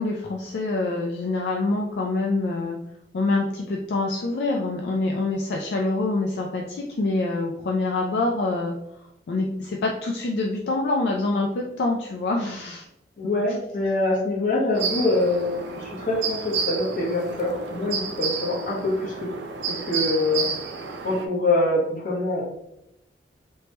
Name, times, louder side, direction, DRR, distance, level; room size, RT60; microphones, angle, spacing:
voice 1, 0.0-2.8 3.1-8.7 9.3-12.9, left 2 dB, 70° left, 0 dB, 0.3 m, -25 dB
voice 2, 13.2-19.3 19.7-20.5 21.0-22.4, left 2 dB, 50° left, -4 dB, 1.0 m, -24 dB
sound 1, 14.7-21.3, right 5 dB, 80° right, 0.4 m, -31 dB
3.0 x 2.1 x 2.9 m, 0.83 s
head